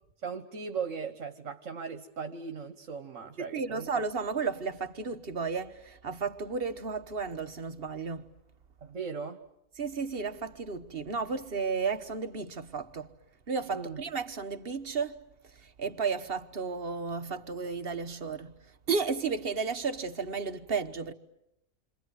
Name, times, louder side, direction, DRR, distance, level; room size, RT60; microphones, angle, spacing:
voice 1, 0.2-3.9 8.8-9.4 13.7-14.0, right 5 dB, 70° right, 1.7 m, -38 dB
voice 2, 3.5-8.3 9.8-13.1 13.5-15.2 15.6-18.6 18.9-21.1, right 5 dB, 50° right, 1.4 m, -33 dB
28.5 x 25.5 x 8.1 m
omnidirectional pair, 1.3 m